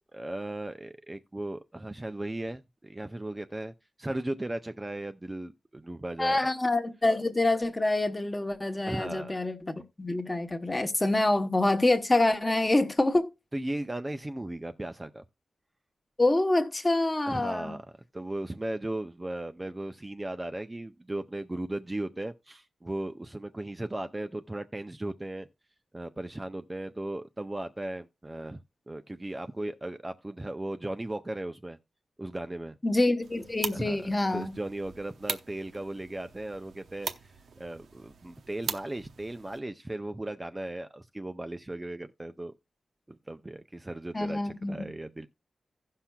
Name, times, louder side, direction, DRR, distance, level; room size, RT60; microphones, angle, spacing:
voice 1, 0.1-3.7 4.0-6.5 8.8-9.3 13.5-15.2 17.3-17.9 18.1-25.5 25.9-28.6 28.9-31.8 32.2-32.8 33.7-42.5 43.1-45.3, right 1 dB, 15° right, 0.4 m, -36 dB
voice 2, 6.2-13.3 16.2-17.7 32.8-34.5 44.1-44.9, left 2 dB, 20° left, 0.9 m, -26 dB
sound 1, 33.2-39.6, right 5 dB, 80° right, 0.7 m, -41 dB
16.5 x 5.7 x 2.2 m
wide cardioid pair, 145°, 0 cm